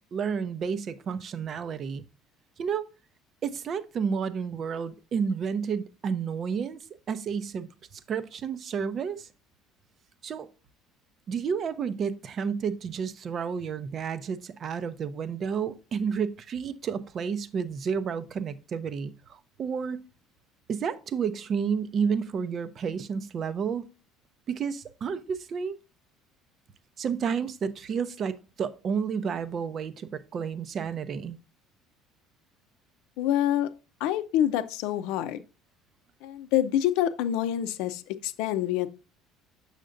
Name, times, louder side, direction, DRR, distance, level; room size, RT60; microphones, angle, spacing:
voice 1, 0.1-2.0 2.6-2.9 3.4-6.8 7.1-9.3 10.2-10.5 11.3-20.0 20.7-23.8 24.5-25.8 27.0-31.4, right 6 dB, 45° right, 0.6 m, -31 dB
voice 2, 33.2-33.7 34.0-35.4 36.2-38.9, left 11 dB, 80° left, 0.5 m, -26 dB
6.5 x 6.5 x 2.5 m
supercardioid pair, 100°, 0 cm